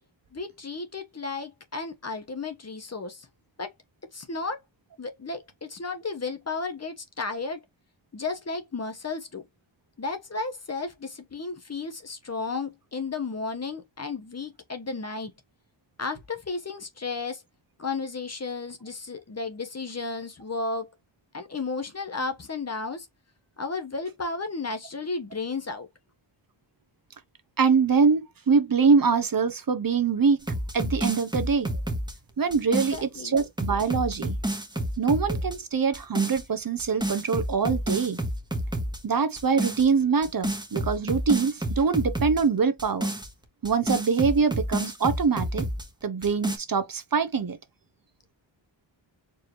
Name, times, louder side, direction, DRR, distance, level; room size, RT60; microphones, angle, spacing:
voice 1, 0.3-3.3 3.6-3.7 4.1-4.6 5.0-7.6 8.1-9.4 10.0-15.3 16.0-17.4 17.8-20.9 21.3-23.1 23.6-25.9 32.9-33.4 34.7-34.8, left 4 dB, 35° left, 1.0 m, -33 dB
voice 2, 27.6-30.4 30.7-31.7 32.4-34.4 35.0-38.2 39.0-43.1 43.6-45.6 46.0-47.6, right 5 dB, 45° right, 0.9 m, -24 dB
sound 1, 30.4-33.0 33.4-35.6 35.9-36.4 36.8-39.0 39.4-39.9 40.2-42.4 42.8-45.9 46.2-46.6, right 1 dB, 10° right, 1.1 m, -30 dB
4.7 x 2.7 x 3.1 m
wide cardioid pair, 110°, 46 cm